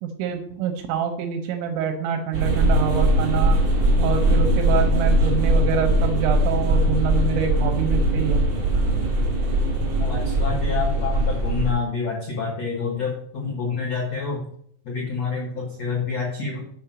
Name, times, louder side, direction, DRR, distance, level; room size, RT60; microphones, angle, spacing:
voice 1, 0.0-3.6 4.0-8.5, right 6 dB, 75° right, 5 dB, 3.1 m, -26 dB
sound 1, 2.3-11.7, right 1 dB, 40° right, 2.4 m, -20 dB
voice 2, 10.0-14.4 14.8-16.7, left 5 dB, 85° left, -1 dB, 1.4 m, -28 dB
7.0 x 6.1 x 5.9 m, 0.64 s
omnidirectional pair, 5.6 m